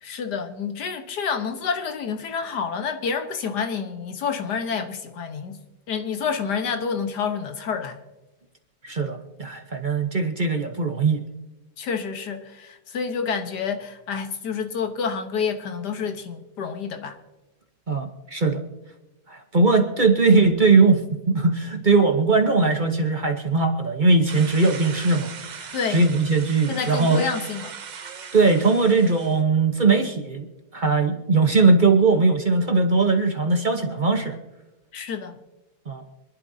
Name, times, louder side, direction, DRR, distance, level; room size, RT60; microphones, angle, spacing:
voice 1, 0.0-5.6 5.9-8.0 11.8-17.2 25.7-26.0 26.7-27.7 34.9-35.4, left 6 dB, 80° left, 7 dB, 1.8 m, -28 dB
voice 2, 8.8-11.2 17.9-18.6 19.3-27.2 28.3-30.5 30.7-34.4 35.9-36.0, right 3 dB, 35° right, 4 dB, 1.0 m, -20 dB
sound 1, 24.3-29.4, right 6 dB, 65° right, 0.4 m, -39 dB
25.5 x 11.5 x 2.7 m, 1.0 s
omnidirectional pair, 1.7 m